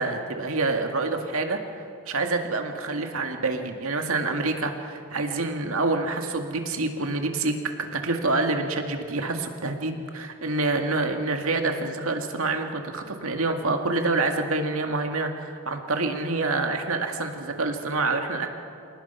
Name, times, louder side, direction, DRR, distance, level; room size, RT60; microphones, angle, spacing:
voice 1, 0.0-1.6 2.1-7.6 7.9-18.5, right 3 dB, 75° right, 4 dB, 2.0 m, -27 dB
27.5 x 18.5 x 5.7 m, 2.5 s
head